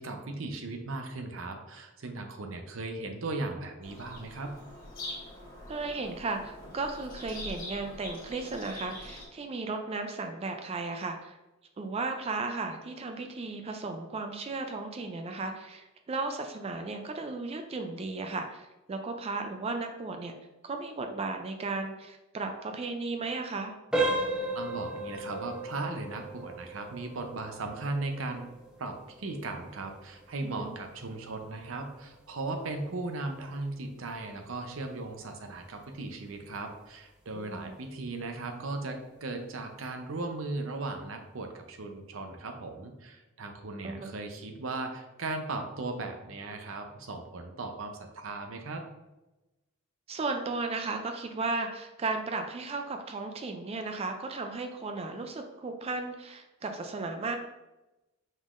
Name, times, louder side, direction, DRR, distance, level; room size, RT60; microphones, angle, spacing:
voice 1, 0.0-4.5 24.5-28.4 28.8-48.8, right 2 dB, 70° right, 5 dB, 0.7 m, -37 dB
Bird vocalization bird call bird song, 3.8-9.3, left 1 dB, 45° left, 1.5 m, -44 dB
voice 2, 5.7-11.4 11.8-20.3 20.6-23.8 30.4-30.8 37.3-37.8 43.8-44.2 50.1-57.4, right 3 dB, 30° right, 5 dB, 0.3 m, -35 dB
sound 1, 23.9-34.6 34.9-35.2 35.8-35.9 36.4-36.5, right 1 dB, 5° right, 0.8 m, -36 dB
5.2 x 3.6 x 2.5 m, 1.0 s
head